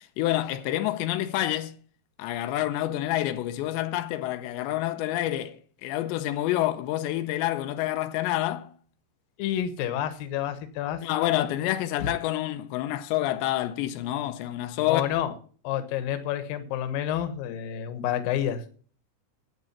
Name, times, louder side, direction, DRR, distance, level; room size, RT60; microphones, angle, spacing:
voice 1, 0.2-1.8 2.2-8.7 11.0-15.0, left 14 dB, 85° left, 2.9 m, -28 dB
voice 2, 9.4-11.0 14.9-15.3 15.6-18.6, left 10 dB, 65° left, 2.6 m, -29 dB
11.0 x 8.7 x 5.9 m
omnidirectional pair, 5.0 m